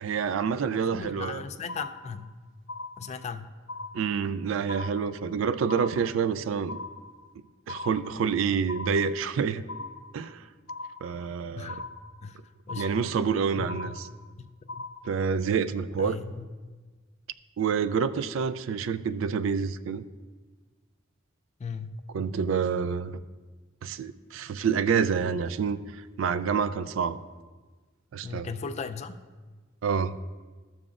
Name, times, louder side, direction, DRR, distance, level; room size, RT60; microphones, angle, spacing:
voice 1, 0.0-1.4 3.9-6.8 7.7-9.6 10.1-10.5 11.0-11.8 12.8-14.1 15.0-16.2 17.6-20.0 22.1-23.2 23.8-27.2 28.1-28.5 29.8-30.2, right 6 dB, 75° right, 13 dB, 0.3 m, -28 dB
voice 2, 0.7-2.3 3.0-3.5 11.6-11.8 12.2-12.4 12.7-12.9 13.6-13.9 14.4-14.5 14.7-14.9 16.0-16.5 21.6-22.0 28.2-29.2, left 5 dB, 35° left, 9 dB, 0.3 m, -37 dB
sound 1, 1.0-1.4 1.7-2.4 2.7-3.4 3.7-4.4 4.7-5.4 5.7-6.4 6.7-7.4 7.7-8.4 8.7-9.4 9.7-10.4 10.7-11.4 11.7-12.4 12.7-13.4 13.7-14.4 14.7-15.4, left 3 dB, 75° left, 0.7 m, -41 dB
13.0 x 7.1 x 2.4 m, 1.4 s
head